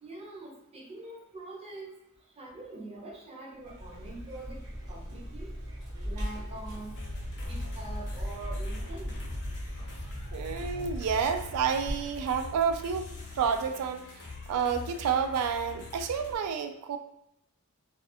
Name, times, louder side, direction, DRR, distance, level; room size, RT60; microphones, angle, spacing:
voice 1, 0.0-1.9 2.4-4.6 4.9-5.5 6.0-6.9 7.5-9.1, right 2 dB, 25° right, -3 dB, 0.5 m, -44 dB
Vehicle, 3.6-13.9, equal, 50° right, 1.0 m, -39 dB
sound 1, 6.9-16.3, left 3 dB, 50° left, 0.6 m, -44 dB
voice 2, 10.3-13.1 13.3-14.0 14.5-17.0, right 6 dB, 85° right, 11 dB, 0.3 m, -29 dB
2.3 x 2.3 x 2.7 m, 0.80 s
head